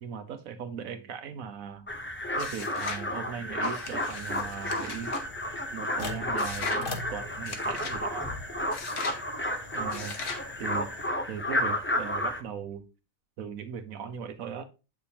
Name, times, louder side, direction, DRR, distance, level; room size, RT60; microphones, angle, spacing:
voice 1, 0.0-1.9 2.4-5.1 5.7-8.3 9.7-10.2 10.6-10.9 11.3-12.8 13.4-14.6, right 7 dB, 75° right, 9 dB, 1.3 m, -38 dB
sound 1, 1.9-12.4, left 1 dB, 15° left, 0.5 m, -32 dB
sound 2, 2.4-3.1 3.6-5.2 6.4-6.8 7.4-8.0 8.7-9.2 9.9-10.5, left 4 dB, 60° left, 1.4 m, -39 dB
sound 3, 3.9-11.1, left 3 dB, 40° left, 1.4 m, -43 dB
8.6 x 6.1 x 2.8 m, 0.30 s
omnidirectional pair, 1.4 m